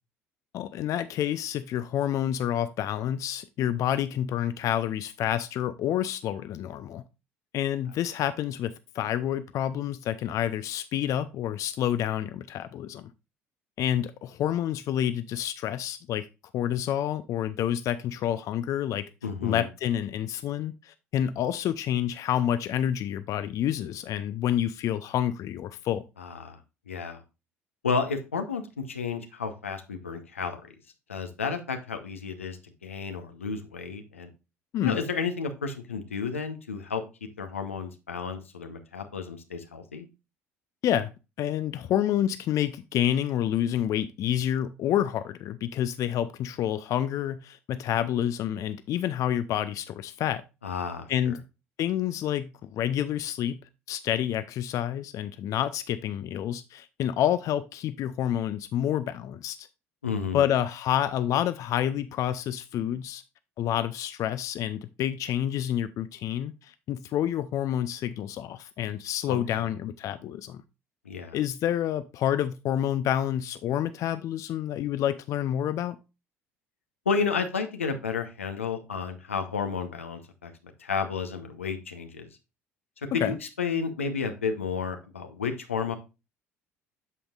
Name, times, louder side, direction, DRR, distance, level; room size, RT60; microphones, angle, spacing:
voice 1, 0.5-7.0 7.5-13.1 13.8-16.3 16.5-19.1 19.4-26.0 34.7-35.0 40.8-41.1 41.4-50.4 51.1-51.4 51.8-53.6 53.9-59.7 60.3-63.2 63.6-70.6 71.3-76.0 83.1-83.4, left 11 dB, 55° left, 0.5 m, -28 dB
voice 2, 19.2-19.7 26.2-26.6 26.9-27.2 27.8-30.7 31.1-34.3 34.8-37.0 37.4-40.1 50.6-51.3 60.0-60.4 69.3-69.7 71.0-71.4 77.1-80.5 80.8-82.3 83.1-86.0, left 5 dB, 90° left, 0.9 m, -32 dB
8.3 x 7.1 x 2.4 m
hypercardioid pair, 60°, 7 cm